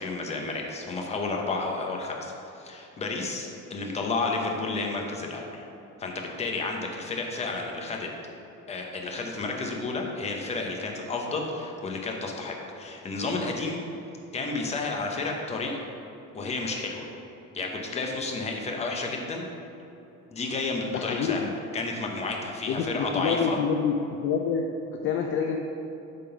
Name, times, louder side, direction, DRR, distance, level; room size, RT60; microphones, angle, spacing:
voice 1, 0.0-5.6 6.0-8.1 8.7-13.8 14.3-15.9 16.3-17.1 17.5-19.5 20.3-21.5 21.7-23.6, left 3 dB, 20° left, 1 dB, 0.8 m, -31 dB
voice 2, 20.9-21.5 22.6-24.0 24.2-25.6, left 6 dB, 45° left, 3 dB, 0.4 m, -27 dB
8.6 x 3.7 x 5.7 m, 3.0 s
cardioid pair, 170°, 29 cm